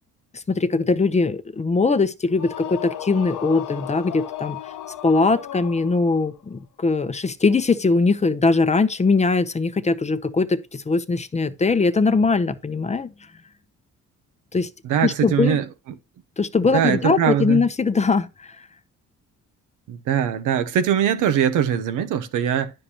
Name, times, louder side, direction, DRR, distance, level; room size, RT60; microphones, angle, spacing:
voice 1, 0.3-4.6 5.0-13.1 14.5-14.7 15.0-15.6 16.4-18.7, left 4 dB, 25° left, 0.7 m, -21 dB
sound 1, 2.3-6.3, left 11 dB, 80° left, 0.8 m, -35 dB
voice 2, 14.8-15.6 16.7-17.6 19.9-22.7, right 9 dB, 85° right, 0.9 m, -21 dB
9.8 x 6.5 x 2.9 m
cardioid pair, 90°, 30 cm